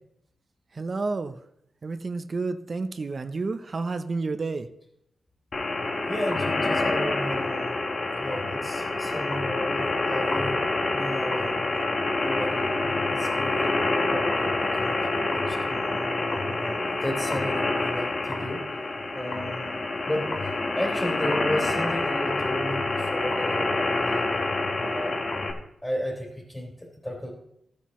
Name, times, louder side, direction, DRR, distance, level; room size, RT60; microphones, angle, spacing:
voice 1, 0.8-1.4 1.8-4.7, right 3 dB, 45° right, 8 dB, 0.6 m, -30 dB
sound 1, 5.5-25.5, left 2 dB, 50° left, 1.3 m, -27 dB
voice 2, 6.1-7.8 8.2-10.6 10.9-11.7 12.2-18.6 19.1-19.7 20.1-20.3 20.7-24.3 24.8-25.2 25.8-27.3, equal, 15° left, -3 dB, 3.1 m, -33 dB
14.5 x 8.3 x 3.1 m, 0.77 s
wide cardioid pair, 95°, 0 cm